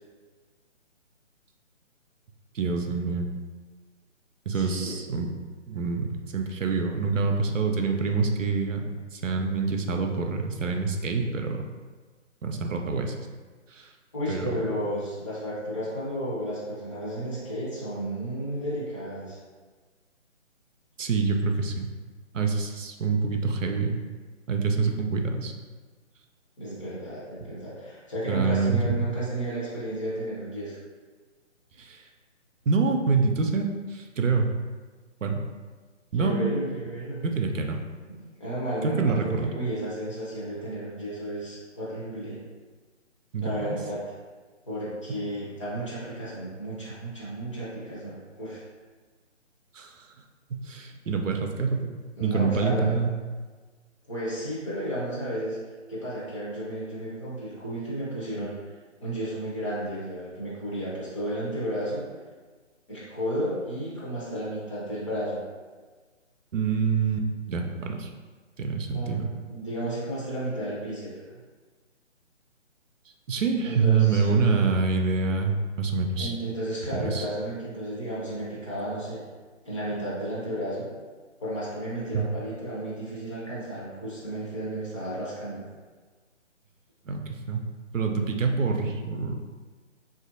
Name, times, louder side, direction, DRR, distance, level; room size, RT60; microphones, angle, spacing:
voice 1, 2.5-3.3 4.5-5.3 5.7-11.6 12.4-13.1 13.7-13.8 14.3-14.6 21.0-21.9 22.3-24.0 24.5-25.5 28.3-28.9 31.8-32.0 32.7-34.5 35.2-35.4 36.1-36.5 37.2-37.8 38.8-39.5 43.3-43.8 49.7-50.1 50.5-51.9 52.2-53.1 66.5-68.1 68.6-69.3 73.3-76.4 76.9-77.3 82.1-82.2 87.1-87.6 87.9-89.4, right 4 dB, 80° right, 3 dB, 0.5 m, -26 dB
voice 2, 4.5-4.9 14.1-19.4 26.6-30.8 36.2-37.2 38.1-42.4 43.4-44.1 44.7-48.6 52.2-53.0 54.1-55.6 55.9-58.6 59.0-62.1 62.9-65.4 68.9-71.1 73.6-74.7 76.2-79.2 79.6-80.9 81.4-85.6, right 1 dB, 25° left, -9 dB, 0.7 m, -33 dB
3.2 x 2.5 x 2.5 m, 1.4 s
figure-of-eight pair, 145°, 38 cm